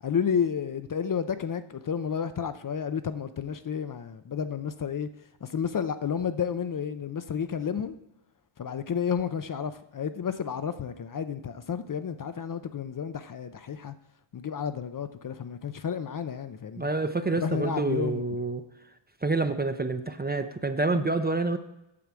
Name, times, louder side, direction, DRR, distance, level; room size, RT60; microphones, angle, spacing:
voice 1, 0.0-5.1 5.4-8.0 8.6-13.9 14.3-16.9 17.4-18.3, left 7 dB, 40° left, 0.5 m, -31 dB
voice 2, 16.8-18.6 19.2-21.6, right 3 dB, 20° right, 0.5 m, -27 dB
8.6 x 4.6 x 7.5 m
wide cardioid pair, 100°, 50 cm